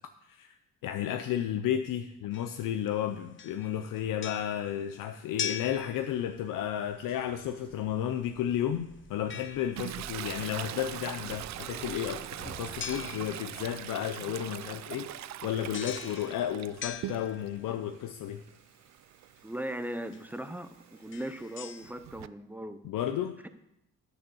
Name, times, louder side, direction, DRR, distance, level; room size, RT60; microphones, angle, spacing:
voice 1, 0.8-18.4 22.8-23.4, left 10 dB, 90° left, 7 dB, 0.7 m, -33 dB
sound 1, 2.3-3.0 3.4-6.7 9.3-10.2 12.8-13.8 15.7-17.8 19.4-19.5 20.1-20.3 21.0-21.9, left 8 dB, 40° left, 0.5 m, -42 dB
sound 2, 5.5-17.7, right 3 dB, 30° right, 2.0 m, -52 dB
Toilet flush, 9.8-17.6 18.0-22.3, right 13 dB, 60° right, 0.4 m, -42 dB
voice 2, 19.4-20.7 21.0-22.8 23.4-23.5, right 1 dB, 5° right, 10 dB, 0.6 m, -38 dB
10.0 x 6.5 x 7.0 m, 0.85 s
cardioid pair, 135°, 32 cm